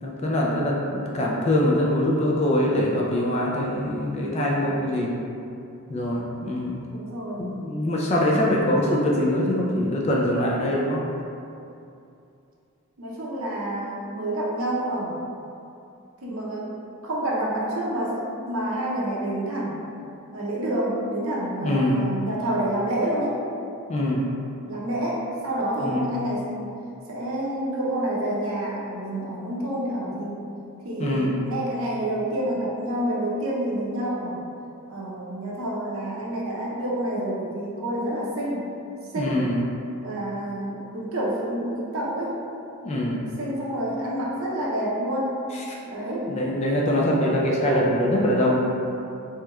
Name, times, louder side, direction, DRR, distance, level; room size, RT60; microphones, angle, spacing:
voice 1, 0.0-5.1 5.9-6.8 7.4-11.0 21.6-22.0 23.9-24.3 25.8-26.1 31.0-31.4 39.2-39.6 42.8-43.3 46.3-48.6, left 1 dB, 30° left, -3 dB, 0.3 m, -23 dB
voice 2, 6.9-7.5 13.0-15.2 16.2-16.7 17.0-19.8 20.3-23.4 24.7-26.7 27.1-30.4 30.8-34.4 34.9-38.7 39.1-39.5 40.0-42.4 43.4-45.4 45.9-46.3, right 1 dB, 70° right, -5 dB, 0.6 m, -28 dB
3.3 x 3.0 x 2.3 m, 2.6 s
head